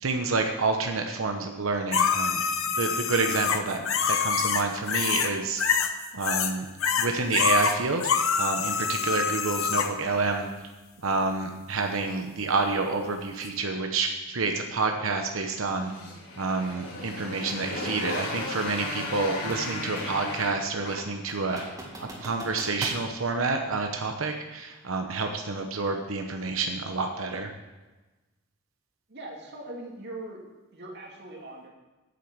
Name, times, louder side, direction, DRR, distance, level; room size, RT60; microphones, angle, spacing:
voice 1, 0.0-2.4 2.8-3.8 4.1-5.6 6.1-6.7 7.0-8.1 8.4-10.5 11.0-15.9 16.3-21.6 22.0-27.5, right 3 dB, 90° right, 4 dB, 1.0 m, -28 dB
sound 1, 1.9-5.3 5.6-6.5 6.8-9.9 13.5-13.6, left 6 dB, 85° left, 0.9 m, -26 dB
Motorcycle, 15.6-21.9, left 2 dB, 55° left, 3.8 m, -36 dB
sound 2, 17.5-17.7 19.0-20.3 20.7-20.8 21.3-23.1, right 1 dB, 20° right, 2.1 m, -41 dB
voice 2, 29.1-30.4 30.7-31.7, right 1 dB, 55° right, 0 dB, 2.3 m, -40 dB
9.1 x 7.9 x 7.2 m, 1.2 s
head